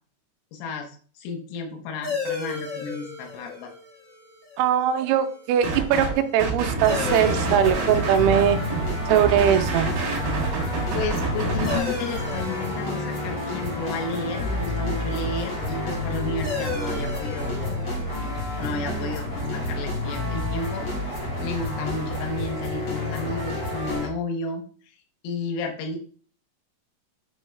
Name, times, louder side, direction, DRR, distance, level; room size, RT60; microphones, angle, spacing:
voice 1, 0.5-3.7 10.8-17.8 18.6-24.6 25.2-26.0, left 3 dB, 85° left, 3 dB, 3.7 m, -32 dB
sound 1, 2.0-21.2, left 4 dB, 5° left, 2.2 m, -38 dB
voice 2, 4.6-8.6 9.1-9.9, right 9 dB, 85° right, 8 dB, 3.3 m, -21 dB
sound 2, 5.6-6.1 6.4-11.8, right 3 dB, 55° right, 2.8 m, -28 dB
sound 3, 6.9-24.1, left 1 dB, 60° left, 1.4 m, -29 dB
9.4 x 5.3 x 2.2 m, 0.43 s
omnidirectional pair, 6.0 m